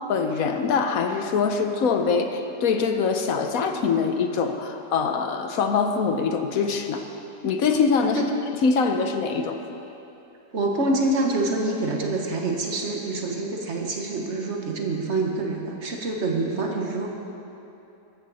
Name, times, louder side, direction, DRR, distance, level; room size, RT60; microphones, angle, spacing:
voice 1, 0.1-7.0 7.4-8.2 8.6-9.6, left 5 dB, 75° left, 6 dB, 1.3 m, -23 dB
voice 2, 10.5-17.1, right 2 dB, 50° right, 1 dB, 1.7 m, -26 dB
14.0 x 13.5 x 4.2 m, 2.9 s
omnidirectional pair, 1.5 m